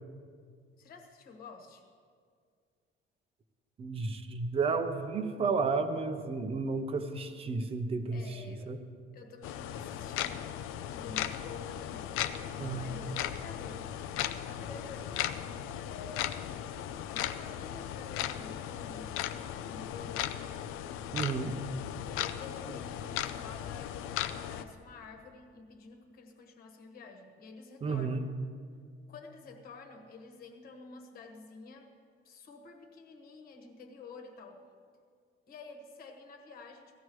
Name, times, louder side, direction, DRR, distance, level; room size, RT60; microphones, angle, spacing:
voice 1, 0.8-1.8 8.1-8.7 9.1-10.4 10.9-12.2 12.6-14.0 14.4-15.5 15.8-16.6 17.1-20.4 22.0-24.0 24.3-28.3 29.1-31.9 32.2-34.7 35.5-37.0, left 4 dB, 45° left, 4 dB, 1.5 m, -50 dB
voice 2, 3.8-8.8 12.6-12.9 21.1-21.6 22.7-22.8 27.8-28.2, right 4 dB, 25° right, 8 dB, 0.7 m, -32 dB
sound 1, 9.4-24.6, left 11 dB, 85° left, 0.6 m, -37 dB
17.5 x 14.5 x 3.1 m, 2.1 s
cardioid pair, 175°, 21 cm